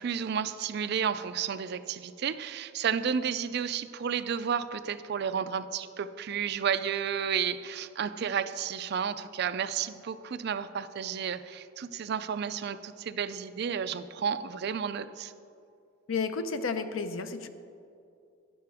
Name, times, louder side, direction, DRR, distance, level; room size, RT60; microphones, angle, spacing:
voice 1, 0.0-15.3, right 7 dB, 55° right, 12 dB, 0.4 m, -32 dB
voice 2, 16.1-17.5, left 4 dB, 80° left, 11 dB, 0.6 m, -32 dB
11.5 x 10.5 x 3.5 m, 2.5 s
head